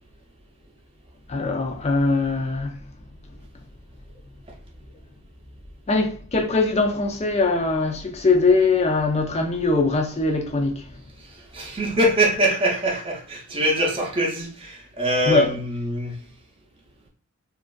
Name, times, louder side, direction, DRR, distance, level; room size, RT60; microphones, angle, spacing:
voice 1, 1.3-2.8 5.9-10.8 15.2-15.5, left 3 dB, 30° left, 0.5 m, -21 dB
voice 2, 11.5-16.2, right 1 dB, 25° right, 0.7 m, -23 dB
3.0 x 2.5 x 2.3 m
head